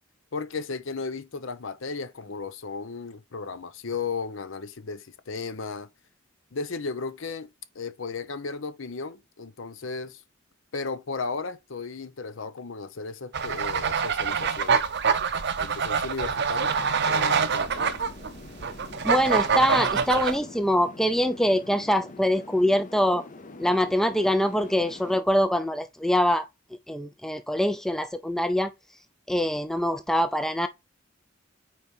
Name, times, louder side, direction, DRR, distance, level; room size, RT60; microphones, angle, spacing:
voice 1, 0.3-5.9 6.5-7.5 7.7-10.2 10.7-14.8 15.6-16.7 17.1-18.0, left 4 dB, 65° left, 0.7 m, -35 dB
sound 1, 13.3-20.4, right 6 dB, 55° right, 0.6 m, -25 dB
sound 2, 16.6-25.2, left 2 dB, 40° left, 0.7 m, -45 dB
voice 2, 19.0-23.3 23.6-26.5 26.9-28.7 29.3-30.7, equal, ahead, 0.4 m, -24 dB
4.7 x 4.3 x 5.2 m
head